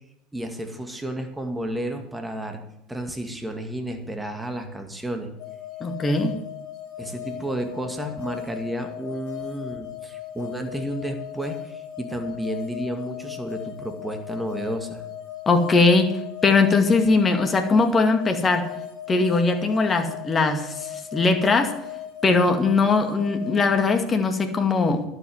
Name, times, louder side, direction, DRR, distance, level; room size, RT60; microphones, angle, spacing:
voice 1, 0.3-2.6 2.9-5.3 7.0-15.0, right 1 dB, 10° right, 5 dB, 2.2 m, -31 dB
sound 1, 5.4-23.7, left 12 dB, 60° left, 2.5 m, -38 dB
voice 2, 5.8-6.3 15.5-16.1 16.4-18.7 19.1-21.7 22.2-25.1, left 3 dB, 25° left, 5 dB, 2.2 m, -20 dB
11.5 x 8.1 x 7.9 m, 0.83 s
hypercardioid pair, 75°, 0 cm